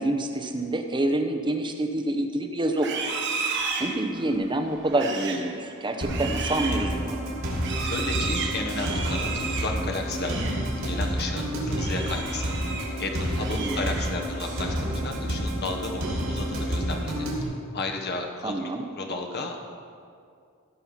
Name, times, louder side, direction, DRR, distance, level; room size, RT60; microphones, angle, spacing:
voice 1, 0.0-3.0 3.4-7.2 13.5-13.8 18.4-18.8, right 1 dB, 25° right, 5 dB, 0.8 m, -27 dB
Livestock farm animals working animals, 2.7-10.7 11.0-11.3 11.7-13.0 13.3-14.4, right 5 dB, 60° right, 1.3 m, -34 dB
sound 1, 6.0-17.4, equal, 85° right, 2.6 m, -29 dB
voice 2, 7.8-10.4 10.8-18.7 19.0-19.6, left 2 dB, 55° left, 2 dB, 1.2 m, -33 dB
16.0 x 5.6 x 5.8 m, 2.3 s
head